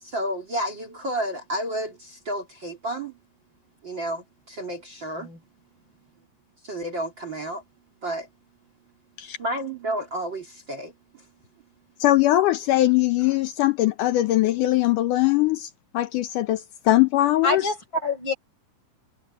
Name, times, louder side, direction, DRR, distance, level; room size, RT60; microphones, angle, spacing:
voice 1, 0.0-3.2 3.8-5.3 6.6-7.6 8.0-8.3 9.4-11.2, right 1 dB, 30° right, 3.0 m, -31 dB
voice 2, 12.0-17.6, left 15 dB, 80° left, 1.9 m, -21 dB
voice 3, 17.4-18.3, left 3 dB, 25° left, 6.6 m, -26 dB
omnidirectional pair, 4.7 m